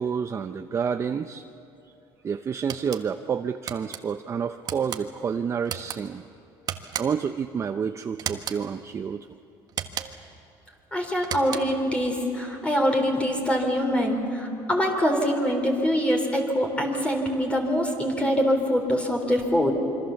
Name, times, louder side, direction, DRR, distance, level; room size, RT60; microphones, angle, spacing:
voice 1, 0.0-1.4 2.2-6.2 7.0-9.3, right 6 dB, 30° right, 8 dB, 0.7 m, -29 dB
sound 1, 2.7-3.0 3.7-4.0 4.6-5.0 5.6-6.0 6.7-7.3 8.2-8.6 9.7-10.3 11.2-11.8, right 9 dB, 45° right, 1.4 m, -34 dB
voice 2, 10.9-19.8, equal, 15° left, 2 dB, 3.8 m, -24 dB
26.5 x 24.5 x 7.1 m, 2.9 s
cardioid pair, 120°, 9 cm